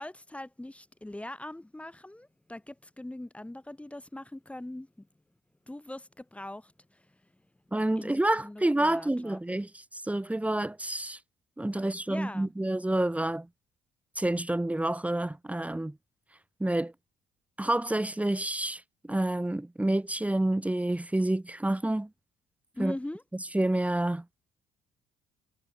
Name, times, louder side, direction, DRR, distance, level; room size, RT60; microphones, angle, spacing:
voice 1, 0.0-5.1 5.7-7.2 8.0-9.4 12.1-12.5 22.7-23.2, left 1 dB, 5° left, 4.0 m, -42 dB
voice 2, 7.7-11.2 11.6-13.5 14.2-15.9 16.6-16.9 17.6-18.8 19.1-22.1 22.8-23.0 23.5-24.2, right 1 dB, 10° right, 3.9 m, -28 dB
cardioid pair, 110°, 17 cm